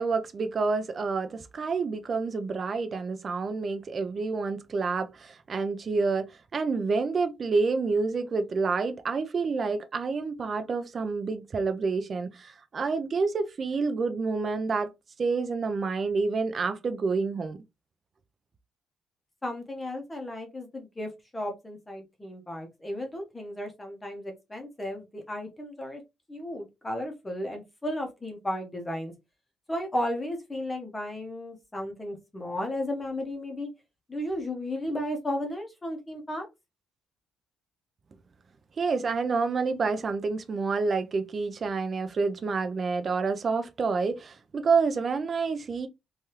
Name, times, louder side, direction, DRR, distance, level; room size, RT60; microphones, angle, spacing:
voice 1, 0.0-14.9 15.2-17.6 38.8-45.9, right 4 dB, 30° right, 0.3 m, -28 dB
voice 2, 19.4-26.0 26.3-29.1 29.7-33.7 34.1-36.5, left 1 dB, 15° left, 0.6 m, -34 dB
3.2 x 2.3 x 2.8 m
cardioid pair, 150°, 0 cm